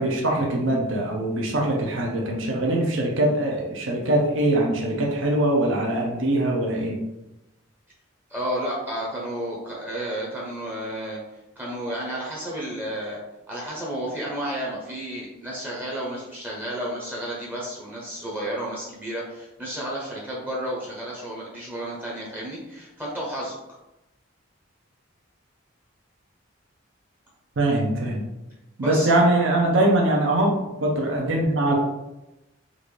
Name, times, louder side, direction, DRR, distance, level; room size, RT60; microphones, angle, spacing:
voice 1, 0.0-7.0 27.6-28.2 28.8-30.5 30.8-31.7, right 1 dB, 65° right, -1 dB, 0.6 m, -22 dB
voice 2, 8.3-11.2 11.6-13.2 13.5-23.6 28.8-29.1, right 1 dB, 10° right, -5 dB, 0.7 m, -32 dB
3.8 x 2.5 x 3.1 m, 0.95 s
head